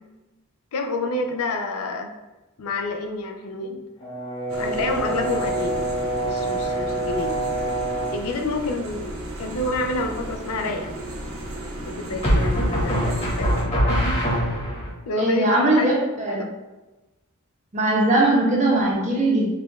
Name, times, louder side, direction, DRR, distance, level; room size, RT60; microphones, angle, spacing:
voice 1, 0.7-2.1 2.6-3.8 4.5-5.8 6.2-7.3 8.1-10.9 11.9-13.5 14.0-14.2 15.1-15.9 16.3-16.5, left 2 dB, 80° left, 4 dB, 0.5 m, -28 dB
Brass instrument, 4.0-8.2, right 1 dB, 65° left, 1.4 m, -27 dB
sound 1, 4.5-13.6, right 1 dB, 70° right, 0.7 m, -35 dB
sound 2, 9.6-10.1 12.2-14.9, equal, 30° left, 1.2 m, -23 dB
voice 2, 15.2-16.5 17.7-19.5, right 2 dB, 35° right, -2 dB, 0.8 m, -20 dB
4.8 x 2.4 x 3.2 m, 1.1 s
head